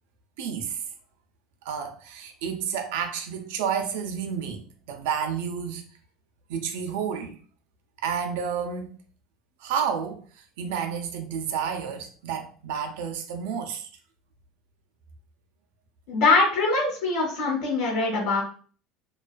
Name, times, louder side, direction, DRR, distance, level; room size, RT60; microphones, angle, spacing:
voice 1, 0.4-0.8 1.6-5.8 6.5-7.4 8.0-9.0 9.6-13.9, right 7 dB, 85° right, 0.4 m, -30 dB
voice 2, 16.1-18.4, left 3 dB, 55° left, 1.0 m, -23 dB
2.3 x 2.3 x 2.4 m
cardioid pair, 180°, 0 cm